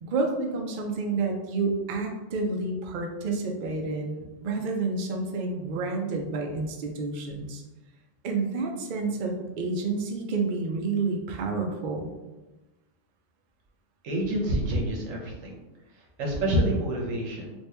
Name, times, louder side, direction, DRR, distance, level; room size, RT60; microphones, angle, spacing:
voice 1, 0.0-7.6 8.2-12.1, right 3 dB, 60° right, 2 dB, 0.5 m, -29 dB
voice 2, 14.0-15.5 16.2-17.5, right 1 dB, 90° right, 0 dB, 1.2 m, -27 dB
2.9 x 2.6 x 3.3 m, 1.1 s
omnidirectional pair, 1.3 m